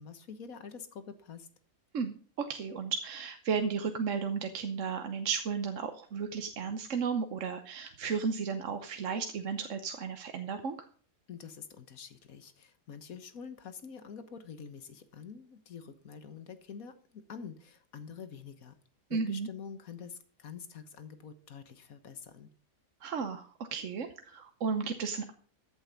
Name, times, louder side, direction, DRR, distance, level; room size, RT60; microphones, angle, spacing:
voice 1, 0.0-1.5 11.3-18.7 19.1-22.5, left 6 dB, 60° left, 10 dB, 1.6 m, -46 dB
voice 2, 1.9-10.9 19.1-19.5 23.0-25.3, right 5 dB, 55° right, 7 dB, 1.2 m, -34 dB
14.5 x 8.0 x 5.2 m, 0.44 s
omnidirectional pair, 1.7 m